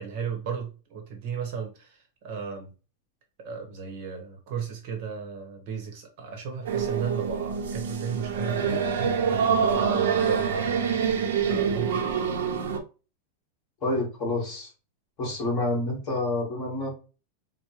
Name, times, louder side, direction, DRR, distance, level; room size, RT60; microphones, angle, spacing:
voice 1, 0.0-2.7 3.4-10.7 11.5-12.1, right 6 dB, 40° right, 3 dB, 0.9 m, -35 dB
sound 1, 6.6-12.8, right 6 dB, 90° right, 0.7 m, -26 dB
voice 2, 13.8-14.7 15.2-16.9, left 2 dB, 25° left, -3 dB, 1.6 m, -28 dB
4.6 x 2.1 x 2.9 m, 0.33 s
supercardioid pair, 175°, 0 cm